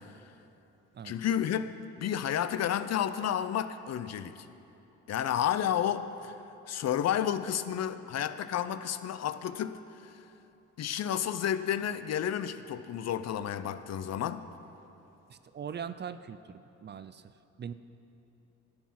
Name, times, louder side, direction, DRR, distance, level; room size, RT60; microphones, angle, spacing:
voice 1, 1.0-1.7 2.0-4.5 5.1-6.3 6.7-9.8 10.0-10.1 10.8-14.4, left 10 dB, 60° left, 12 dB, 0.6 m, -31 dB
voice 2, 15.3-16.4 16.8-17.2 17.6-17.7, right 7 dB, 35° right, 13 dB, 0.5 m, -40 dB
13.0 x 9.5 x 5.9 m, 3.0 s
cardioid pair, 90°, 30 cm